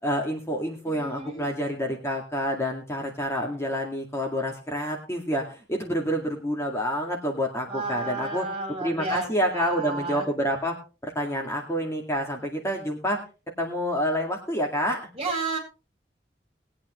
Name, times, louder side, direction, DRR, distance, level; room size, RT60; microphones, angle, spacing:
voice 1, 0.0-8.5 8.8-10.8 11.0-13.2 13.6-15.0, equal, 15° left, 1 dB, 2.1 m, -28 dB
voice 2, 0.8-1.5 7.7-10.3 15.1-15.6, right 3 dB, 35° right, 1 dB, 4.2 m, -32 dB
20.0 x 8.8 x 3.2 m, 0.33 s
head